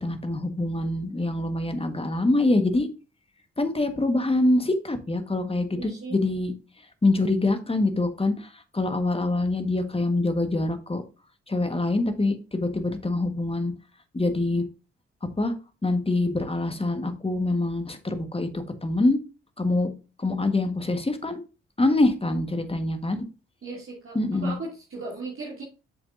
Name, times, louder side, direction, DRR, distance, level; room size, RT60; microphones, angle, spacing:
voice 1, 0.0-2.9 3.6-6.5 7.0-11.0 11.5-13.7 14.1-14.6 15.4-15.5 15.8-18.5 18.8-19.2 19.6-19.9 20.2-21.4 21.8-23.3 24.1-24.5, left 2 dB, 20° left, 8 dB, 1.6 m, -25 dB
voice 2, 5.7-6.2 23.6-25.6, right 3 dB, 45° right, -4 dB, 2.9 m, -37 dB
8.2 x 7.0 x 2.7 m, 0.32 s
hypercardioid pair, 40°, 30 cm